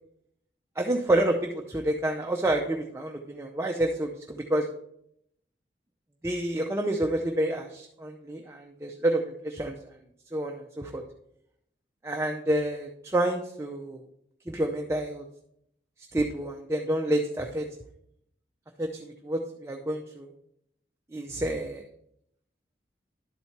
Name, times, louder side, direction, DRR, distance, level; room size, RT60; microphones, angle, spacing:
voice 1, 0.8-4.7 6.2-9.7 10.3-11.0 12.0-14.0 14.5-15.2 16.1-17.7 18.8-20.3 21.1-21.8, right 1 dB, 15° right, 2 dB, 0.5 m, -28 dB
11.5 x 4.2 x 4.5 m, 0.76 s
head